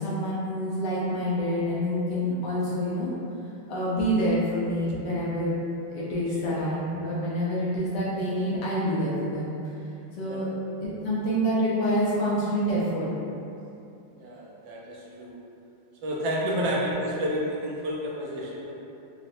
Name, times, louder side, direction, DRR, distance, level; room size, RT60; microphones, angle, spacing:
voice 1, 0.0-3.1 3.7-5.5 5.9-9.5 10.2-10.5 10.8-13.1 16.4-16.6, equal, 75° left, -7 dB, 1.0 m, -27 dB
voice 2, 14.2-15.4 16.0-18.7, equal, 75° right, -4 dB, 1.2 m, -30 dB
3.9 x 2.1 x 2.6 m, 2.7 s
omnidirectional pair, 2.2 m